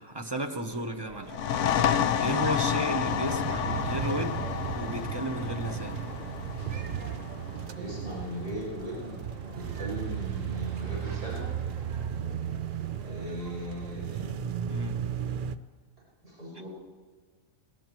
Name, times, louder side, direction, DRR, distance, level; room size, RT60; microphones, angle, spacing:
voice 1, 0.0-1.3 2.2-6.0 14.7-15.0, right 1 dB, 25° right, 6 dB, 0.7 m, -33 dB
sound 1, 0.7-14.0, right 3 dB, 70° right, 1.5 m, -49 dB
sound 2, 1.2-8.6, left 8 dB, 65° left, 0.9 m, -30 dB
sound 3, 3.0-15.6, right 9 dB, 85° right, 0.4 m, -35 dB
voice 2, 7.7-11.5 13.0-14.4 16.2-16.7, equal, 45° right, -7 dB, 6.1 m, -38 dB
20.0 x 18.0 x 3.0 m, 1.5 s
omnidirectional pair, 1.4 m